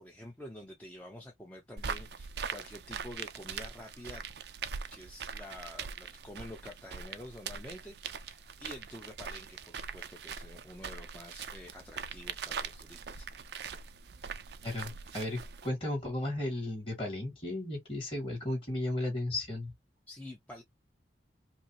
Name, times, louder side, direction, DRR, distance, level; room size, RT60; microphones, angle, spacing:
voice 1, 0.0-4.2 4.9-13.3 20.1-20.6, left 1 dB, 10° left, 0.7 m, -48 dB
sound 1, 1.8-15.7, right 6 dB, 60° right, 0.5 m, -42 dB
voice 2, 14.6-19.7, left 1 dB, 30° left, 2.2 m, -35 dB
5.1 x 2.0 x 2.8 m
head